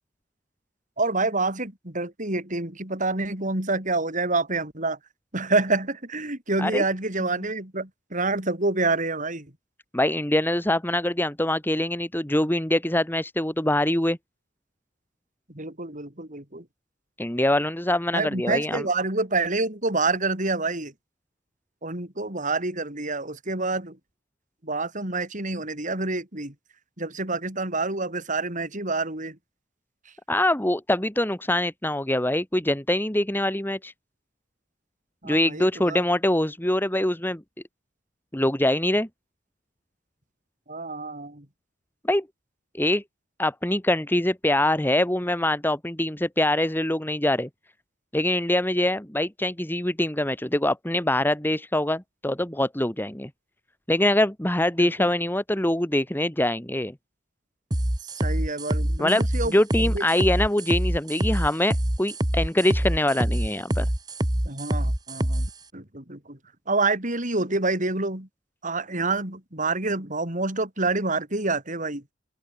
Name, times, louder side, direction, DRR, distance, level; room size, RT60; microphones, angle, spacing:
voice 1, 1.0-5.0 5.3-9.5 15.5-16.6 18.1-20.9 21.8-24.0 24.6-26.5 27.0-29.4 35.2-36.0 40.7-41.5 54.8-54.9 58.0-60.0 64.5-65.5 65.7-66.4 66.7-68.3 68.6-72.0, right 3 dB, 40° right, 5.5 m, -27 dB
voice 2, 9.9-14.2 17.2-18.8 30.3-33.9 35.2-37.4 38.3-39.1 42.0-42.3 42.7-43.0 43.4-47.5 48.1-53.3 53.9-56.9 59.0-63.9, left 1 dB, 10° left, 1.9 m, -24 dB
sound 1, 57.7-65.5, right 1 dB, 20° right, 1.7 m, -25 dB
open air
head